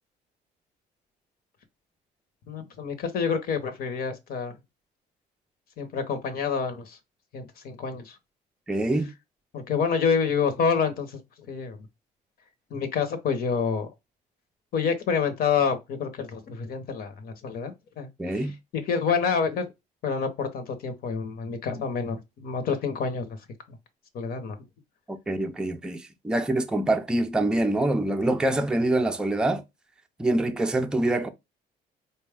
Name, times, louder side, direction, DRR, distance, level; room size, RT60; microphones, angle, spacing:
voice 1, 2.5-4.6 5.8-7.0 7.3-8.2 9.5-11.2 11.5-11.8 12.7-13.9 14.7-18.5 18.7-19.7 20.0-23.3 23.7-23.8 24.1-24.6, left 6 dB, 65° left, 0.9 m, -28 dB
voice 2, 8.7-9.1 18.2-18.5 25.1-29.6 30.2-31.3, right 1 dB, 5° right, 0.5 m, -25 dB
4.1 x 2.3 x 3.4 m
cardioid pair, 110°, 17 cm